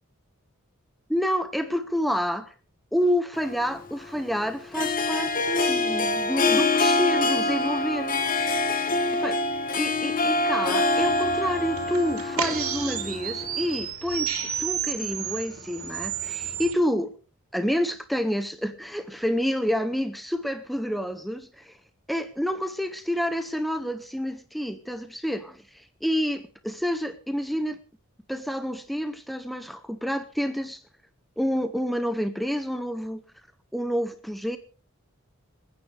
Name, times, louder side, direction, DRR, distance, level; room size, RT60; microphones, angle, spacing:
voice 1, 1.1-2.5 2.9-8.5 9.1-9.4 9.8-14.3 14.6-17.1 17.5-21.8 22.1-27.8 28.3-30.8 31.4-33.2 33.7-34.6, equal, ahead, 0.7 m, -28 dB
Harp, 3.4-13.8, left 2 dB, 40° left, 1.4 m, -25 dB
sound 1, 10.7-16.7, right 8 dB, 85° right, 3.2 m, -32 dB
27.5 x 9.5 x 3.4 m
head